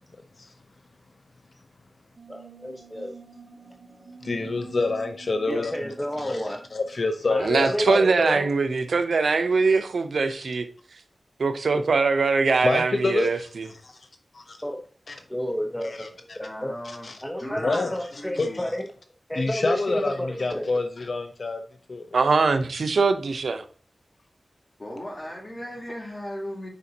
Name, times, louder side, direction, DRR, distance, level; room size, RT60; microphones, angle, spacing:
sound 1, 2.2-7.4, right 4 dB, 55° right, 0.9 m, -46 dB
voice 1, 2.3-3.1 3.7-4.2 5.5-6.6 7.3-8.5 14.6-14.8 15.3-16.1 16.6-16.7 17.2-18.9 19.3-20.6, equal, 10° left, 0.8 m, -30 dB
voice 2, 4.2-8.0 12.6-13.3 13.9-14.0 14.3-14.6 15.1-15.2 15.8-16.4 17.0-17.2 17.6-17.9 18.4-18.5 19.4-21.6 21.9-22.1, left 3 dB, 60° left, 0.6 m, -27 dB
voice 3, 7.4-10.7 11.4-13.7 22.1-23.7, right 4 dB, 80° right, 0.6 m, -22 dB
voice 4, 16.4-18.6 24.8-26.7, equal, 30° left, 3.1 m, -37 dB
6.7 x 5.2 x 2.8 m
wide cardioid pair, 75°, 0 cm